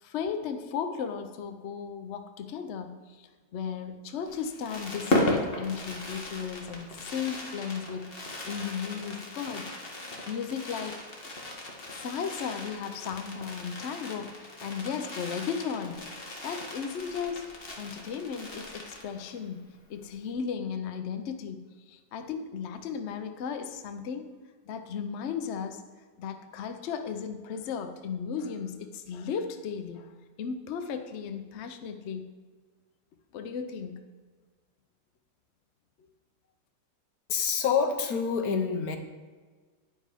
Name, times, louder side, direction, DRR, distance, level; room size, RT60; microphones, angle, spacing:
voice 1, 0.0-9.7 10.3-11.0 11.9-17.5 17.8-19.6 19.9-24.3 24.7-25.8 26.2-30.1 30.4-32.3 33.3-34.0, left 6 dB, 75° left, 8 dB, 0.6 m, -35 dB
Fireworks, 4.3-19.4 19.7-19.8 20.0-20.3, left 1 dB, 35° left, 1.3 m, -36 dB
voice 2, 37.3-39.0, left 6 dB, 60° left, 5 dB, 1.2 m, -27 dB
9.6 x 5.4 x 5.0 m, 1.4 s
omnidirectional pair, 2.0 m